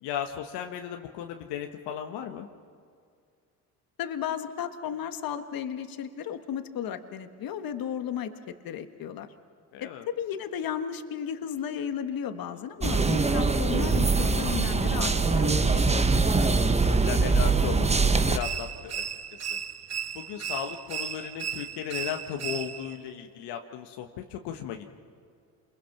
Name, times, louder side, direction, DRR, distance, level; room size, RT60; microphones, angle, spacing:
voice 1, 0.0-2.5 9.7-10.1 12.5-12.6 16.8-19.0 19.3-19.6 20.1-24.9, left 9 dB, 75° left, 4 dB, 1.4 m, -36 dB
voice 2, 4.0-9.3 9.8-15.9, left 8 dB, 55° left, 8 dB, 1.6 m, -34 dB
sound 1, 12.8-18.4, right 4 dB, 15° right, 1.0 m, -23 dB
sound 2, 18.4-23.0, right 8 dB, 40° right, 1.1 m, -35 dB
28.0 x 22.0 x 6.0 m, 2.2 s
supercardioid pair, 75°, 41 cm